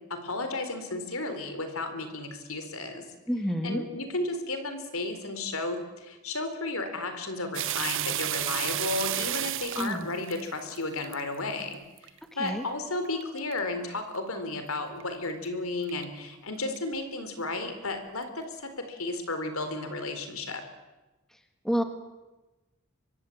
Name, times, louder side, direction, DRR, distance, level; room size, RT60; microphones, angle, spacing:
voice 1, 0.1-3.0 3.6-11.8 12.4-20.6, left 2 dB, 70° left, 8 dB, 4.3 m, -33 dB
voice 2, 3.3-3.9 9.8-10.1 12.4-12.6 21.6-21.8, equal, ahead, 6 dB, 2.2 m, -29 dB
sound 1, 7.5-11.2 11.7-12.1 12.5-12.6 13.0-13.6 14.1-14.2 14.7-14.8 15.0-15.3 15.9-16.0 16.8-16.9, right 13 dB, 60° right, 0.9 m, -31 dB
24.5 x 22.5 x 8.7 m, 1.1 s
head